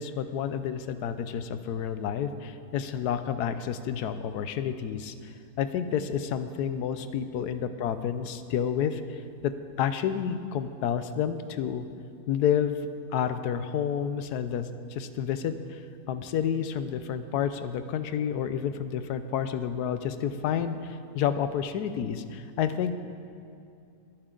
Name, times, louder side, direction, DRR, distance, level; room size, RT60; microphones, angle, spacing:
voice 1, 0.0-5.1 5.6-9.5 9.8-11.8 12.3-12.8 13.1-15.8 16.1-23.0, left 8 dB, 90° left, 11 dB, 1.2 m, -30 dB
24.5 x 8.9 x 3.8 m, 2.6 s
omnidirectional pair, 1.6 m